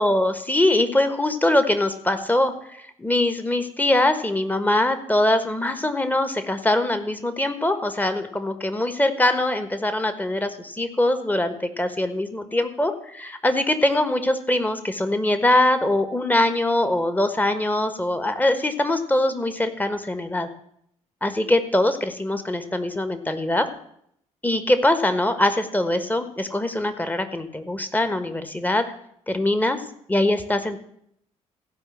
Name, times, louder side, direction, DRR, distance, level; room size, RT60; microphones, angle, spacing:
voice 1, 0.0-2.5 3.0-20.5 21.2-23.7 24.4-28.9 29.3-29.8 30.1-30.8, left 1 dB, 10° left, 9 dB, 1.4 m, -22 dB
15.0 x 5.6 x 7.1 m, 0.70 s
figure-of-eight pair, 45°, 17 cm